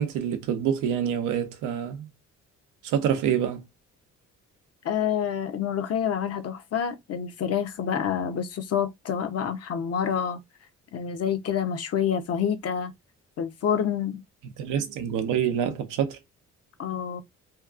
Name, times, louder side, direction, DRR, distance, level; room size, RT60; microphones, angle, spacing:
voice 1, 0.0-2.1 2.8-3.6 14.6-16.2, right 9 dB, 90° right, 0.6 m, -26 dB
voice 2, 4.8-10.4 10.9-12.9 13.4-14.2 16.8-17.2, left 8 dB, 55° left, 0.6 m, -27 dB
2.8 x 2.4 x 2.3 m
cardioid pair, 90°, 30 cm